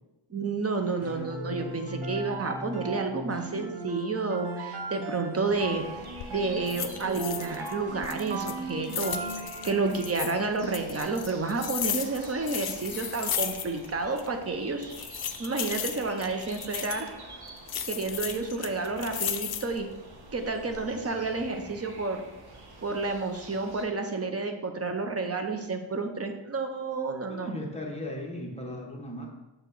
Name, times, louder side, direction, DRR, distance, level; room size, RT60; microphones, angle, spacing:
voice 1, 0.3-5.8 6.3-14.9 15.4-17.1 17.9-19.9 20.3-22.2 22.8-27.5, right 3 dB, 30° right, 5 dB, 0.6 m, -30 dB
sound 1, 1.0-10.2, right 2 dB, 85° right, 1.4 m, -38 dB
sound 2, 5.4-23.8, right 2 dB, 50° right, 1.1 m, -48 dB
sound 3, 6.0-6.3 6.7-7.7 8.0-10.3 10.7-13.9 14.2-14.3 14.8-17.1 17.7-19.8 20.3-20.8, left 9 dB, 50° left, 0.4 m, -35 dB
voice 2, 27.3-29.3, left 1 dB, 15° left, -1 dB, 0.9 m, -37 dB
6.5 x 4.6 x 3.9 m, 1.0 s
wide cardioid pair, 170°, 48 cm